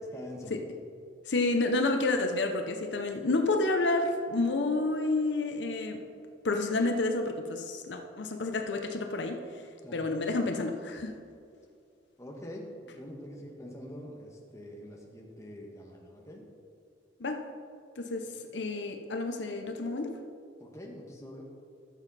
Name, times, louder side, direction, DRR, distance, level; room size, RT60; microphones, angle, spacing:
voice 1, 0.1-0.5 9.8-10.0 12.2-16.4 20.6-21.4, equal, 15° left, -1 dB, 1.4 m, -45 dB
voice 2, 1.3-6.0 6.4-9.4 9.9-11.2 17.2-17.4 18.0-20.2, left 2 dB, 75° left, 5 dB, 0.8 m, -29 dB
13.5 x 7.1 x 4.2 m, 2.4 s
head